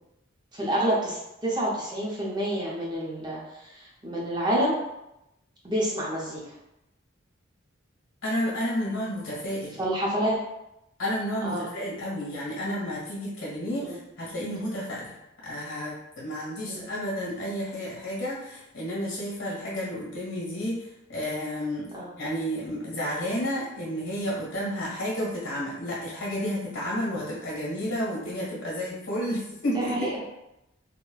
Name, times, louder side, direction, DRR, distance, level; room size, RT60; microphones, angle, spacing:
voice 1, 0.5-4.8 5.6-6.4 8.9-9.0 9.8-10.4 11.4-11.6 13.8-14.0 16.7-16.8 21.9-22.1 29.7-30.1, right 1 dB, 20° right, -4 dB, 0.6 m, -28 dB
voice 2, 8.2-9.8 11.0-15.1 15.4-21.9 22.2-30.1, equal, 75° left, -5 dB, 1.3 m, -31 dB
3.9 x 2.1 x 2.3 m, 0.89 s
head